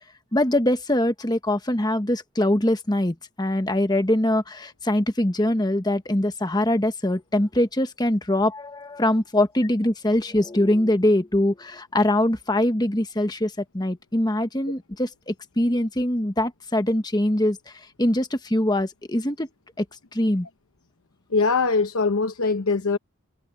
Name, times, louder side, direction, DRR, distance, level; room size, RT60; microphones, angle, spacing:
voice 1, 0.3-17.6 18.0-19.5 19.8-19.9 20.1-20.5, left 1 dB, 20° left, 1.2 m, -23 dB
voice 2, 21.3-23.0, left 4 dB, 75° left, 0.9 m, -22 dB
head